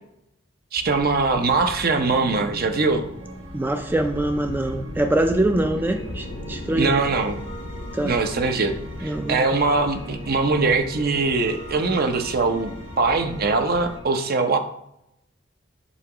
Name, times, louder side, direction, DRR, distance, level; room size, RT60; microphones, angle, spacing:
voice 1, 0.7-3.1 6.8-7.4 8.0-14.6, right 3 dB, 50° right, 6 dB, 0.7 m, -22 dB
sound 1, 0.8-14.0, left 1 dB, 70° left, 0.8 m, -38 dB
sound 2, 1.8-14.0, right 2 dB, 80° right, 1.4 m, -40 dB
voice 2, 3.5-7.0 7.9-8.2 9.0-9.5, right 1 dB, 10° right, 5 dB, 0.4 m, -24 dB
8.2 x 2.9 x 6.0 m, 0.79 s
head